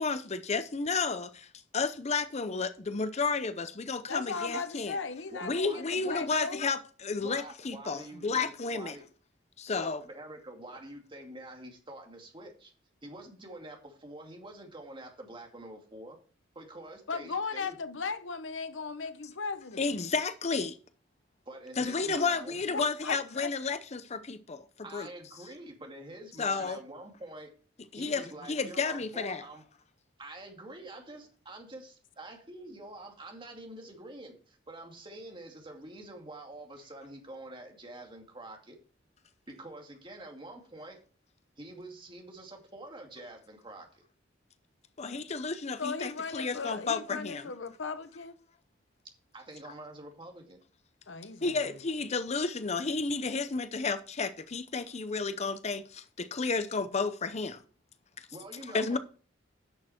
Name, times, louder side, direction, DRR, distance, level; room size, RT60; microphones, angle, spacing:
voice 1, 0.0-1.5 1.7-5.0 5.4-9.0 9.6-10.0 19.8-20.8 21.8-24.7 24.9-25.1 26.4-26.8 27.9-29.4 45.0-47.5 51.4-57.6 58.2-58.3 58.7-59.0, left 4 dB, 35° left, 0.6 m, -32 dB
voice 2, 4.1-6.6 17.1-19.8 22.7-23.5 45.8-48.4 51.1-51.8, left 4 dB, 75° left, 1.0 m, -37 dB
voice 3, 5.3-6.3 7.2-9.0 9.8-12.7 13.0-16.2 16.5-17.8 21.5-22.6 24.8-27.5 27.9-29.6 30.2-38.8 39.5-41.0 41.6-44.0 49.3-50.6 58.3-59.0, right 1 dB, 25° right, 2.4 m, -46 dB
10.5 x 6.6 x 4.4 m
head